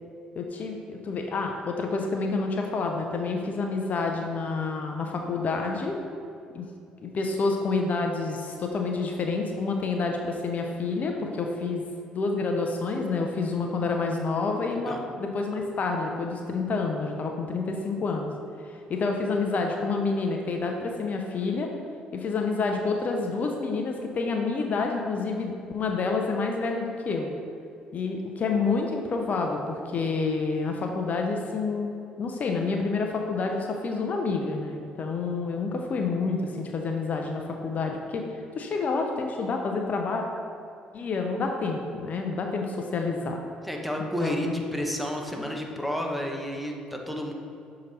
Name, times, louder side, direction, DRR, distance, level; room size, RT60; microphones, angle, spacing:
voice 1, 0.4-6.0 6.5-6.7 7.0-11.8 12.1-18.3 18.6-21.7 22.1-27.3 27.9-40.2 40.9-43.4 44.2-44.5, left 4 dB, 50° left, 2 dB, 0.6 m, -28 dB
voice 2, 14.7-15.0 43.6-47.3, equal, ahead, 1 dB, 1.0 m, -31 dB
6.6 x 3.9 x 4.1 m, 2.6 s
hypercardioid pair, 50°, 3 cm